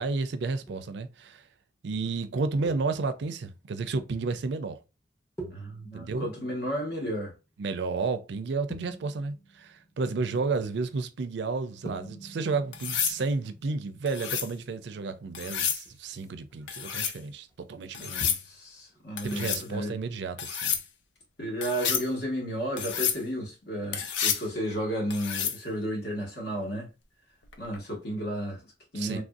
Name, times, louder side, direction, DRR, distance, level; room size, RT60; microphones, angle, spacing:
voice 1, 0.0-1.4 1.8-4.8 5.9-6.3 7.6-18.2 19.2-20.8 28.9-29.2, right 4 dB, 65° right, 0.4 m, -32 dB
sound 1, 0.7-1.1 1.9-2.1 2.7-3.4 5.4-7.5 8.7-10.6 11.8-17.1 17.4-17.6 18.2-18.6 18.9-19.0, right 1 dB, 20° left, 0.8 m, -46 dB
voice 2, 5.5-7.3 18.0-20.0 21.4-26.9 27.6-29.2, equal, 60° left, 1.3 m, -33 dB
sound 2, 12.7-13.2 14.1-14.5 15.3-15.8 16.7-17.2 17.9-18.4 19.2-19.6 20.4-20.8 21.6-22.1 22.8-23.2 23.9-24.5 25.1-25.6 27.5-27.8, left 8 dB, 80° left, 0.5 m, -30 dB
3.3 x 2.6 x 2.3 m
head